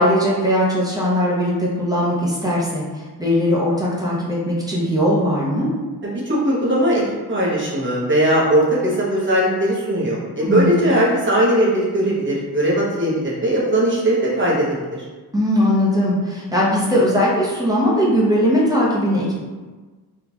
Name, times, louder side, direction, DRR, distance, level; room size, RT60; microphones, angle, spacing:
voice 1, 0.0-5.7 10.4-10.8 15.3-19.3, equal, 10° right, -6 dB, 0.8 m, -19 dB
voice 2, 6.0-7.0 7.3-15.0, right 1 dB, 30° right, -6 dB, 1.1 m, -19 dB
3.7 x 2.4 x 2.9 m, 1.3 s
wide cardioid pair, 120°, 39 cm